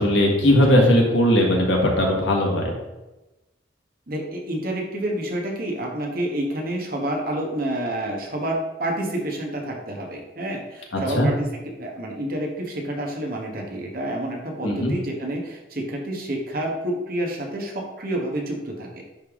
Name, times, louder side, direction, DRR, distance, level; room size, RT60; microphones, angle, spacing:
voice 1, 0.0-2.7 11.1-11.3 14.6-14.9, left 1 dB, 90° left, 0 dB, 1.7 m, -18 dB
voice 2, 4.1-19.0, right 1 dB, 55° right, 1 dB, 1.3 m, -29 dB
10.0 x 3.4 x 3.7 m, 1.0 s
head